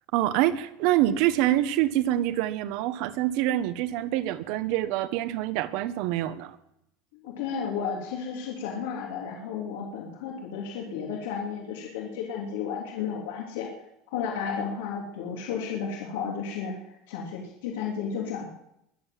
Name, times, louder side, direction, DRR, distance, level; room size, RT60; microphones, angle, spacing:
voice 1, 0.1-6.6, right 13 dB, 50° right, 13 dB, 1.0 m, -26 dB
voice 2, 7.1-13.7 14.1-18.5, left 6 dB, 85° left, -1 dB, 2.9 m, -33 dB
22.0 x 7.7 x 7.5 m, 0.80 s
cardioid pair, 175°, 0 cm